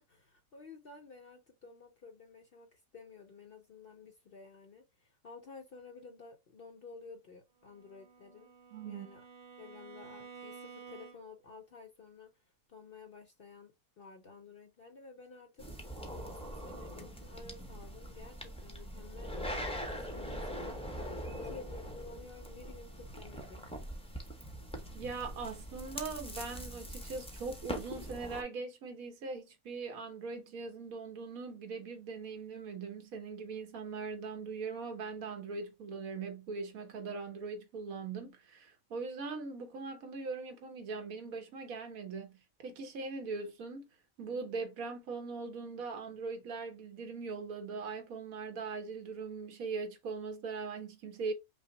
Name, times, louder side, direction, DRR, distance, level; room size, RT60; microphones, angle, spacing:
voice 1, 0.0-8.5 8.8-9.2 9.5-15.7 16.0-23.7, left 4 dB, 50° left, 0.7 m, -53 dB
Bowed string instrument, 7.6-11.5, right 6 dB, 45° right, 1.0 m, -52 dB
voice 2, 8.7-9.1 24.9-43.8 44.2-51.3, right 4 dB, 75° right, 1.5 m, -41 dB
sound 1, 15.6-28.4, equal, 5° left, 0.5 m, -42 dB
5.6 x 2.1 x 3.8 m
omnidirectional pair, 1.5 m